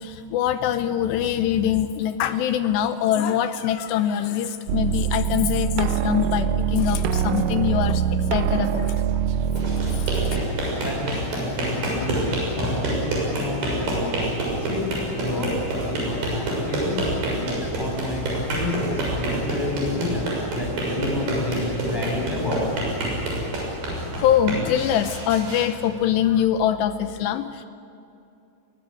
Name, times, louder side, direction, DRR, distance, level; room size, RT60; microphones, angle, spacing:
voice 1, 0.0-8.0 8.3-9.2 10.1-10.2 24.2-27.7, left 10 dB, 80° left, 10 dB, 2.5 m, -23 dB
sound 1, 4.7-10.4, right 8 dB, 85° right, 3.4 m, -24 dB
sound 2, 9.4-26.4, right 1 dB, 50° right, 8.1 m, -27 dB
voice 2, 10.8-14.3 14.6-14.8 15.1-15.5 15.8-18.2 18.6-22.8, left 1 dB, 5° left, -1 dB, 6.1 m, -30 dB
22.5 x 19.5 x 9.6 m, 2.7 s
omnidirectional pair, 5.8 m